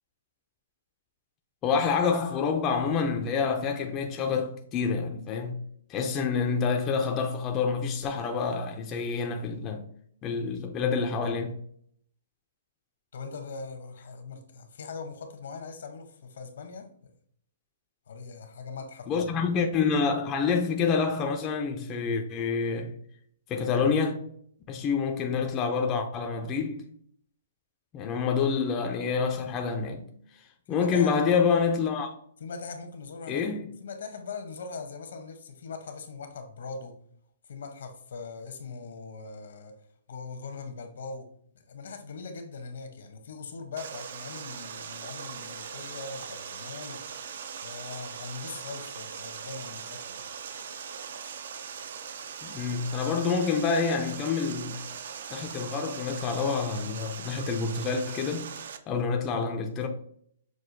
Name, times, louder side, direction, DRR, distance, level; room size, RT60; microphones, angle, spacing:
voice 1, 1.6-5.6 5.9-9.8 10.2-11.6 19.1-22.9 23.5-24.2 24.7-26.8 27.9-30.1 30.7-32.1 33.3-33.7 52.4-54.8 55.3-58.5 58.9-59.9, left 5 dB, 20° left, 0.4 m, -27 dB
voice 2, 13.1-17.1 18.1-19.5 30.7-31.1 32.4-37.0 37.5-39.8 40.1-41.3 41.5-47.1 47.6-50.3, left 4 dB, 70° left, 0.8 m, -41 dB
Water, 43.8-58.8, right 7 dB, 60° right, 0.4 m, -40 dB
6.1 x 2.3 x 2.6 m
hypercardioid pair, 165°, 0 cm